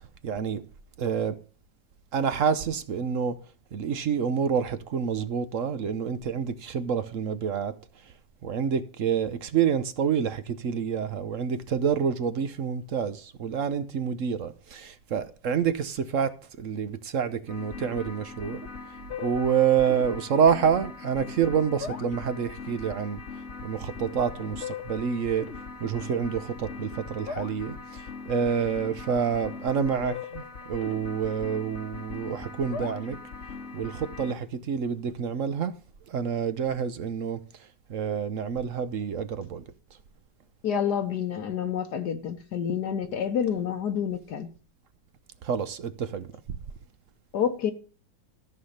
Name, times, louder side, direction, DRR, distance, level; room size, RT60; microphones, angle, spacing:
voice 1, 0.2-0.6 1.0-1.4 2.1-3.4 3.7-7.7 8.4-18.6 19.2-23.2 23.6-25.5 25.8-33.2 33.7-35.7 36.1-37.4 37.9-39.6 45.4-46.3, right 7 dB, 55° right, 1.0 m, -28 dB
sound 1, 17.5-34.3, left 5 dB, 45° left, 1.2 m, -40 dB
voice 2, 40.6-44.5 47.3-47.7, left 8 dB, 70° left, 1.5 m, -28 dB
13.5 x 5.7 x 6.5 m
omnidirectional pair, 1.9 m